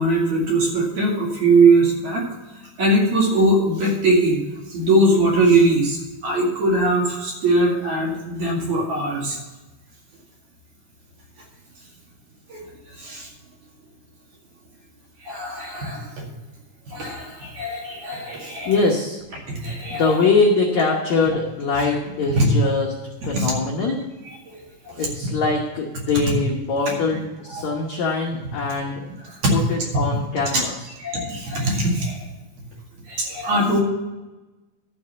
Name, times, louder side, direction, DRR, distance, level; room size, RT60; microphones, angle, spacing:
voice 1, 0.0-2.2 2.8-4.4 4.7-9.4 12.5-12.6 13.0-13.3 15.2-16.1 16.9-18.8 19.5-20.1 21.7-21.8 22.4-22.5 23.2-23.5 24.5-25.1 27.5-27.8 28.7-28.8 29.2-29.5 30.5-30.6 31.0-32.2 33.1-33.8, right 2 dB, 50° right, -2 dB, 3.0 m, -21 dB
voice 2, 18.7-19.2 19.9-22.9 23.3-24.0 25.0-29.0 29.5-30.7, left 3 dB, 70° left, -1 dB, 1.7 m, -22 dB
12.5 x 5.5 x 6.8 m, 1.1 s
omnidirectional pair, 4.9 m